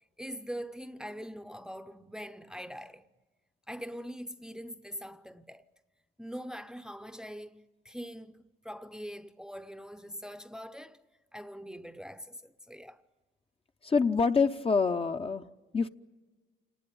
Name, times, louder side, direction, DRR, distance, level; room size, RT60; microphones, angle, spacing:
voice 1, 0.2-3.1 3.7-5.7 6.2-11.0 11.3-13.0, equal, 5° right, 0.8 m, -43 dB
voice 2, 13.8-15.5 15.7-15.9, left 5 dB, 30° left, 0.8 m, -26 dB
28.5 x 19.0 x 8.7 m
cardioid pair, 90°, 20 cm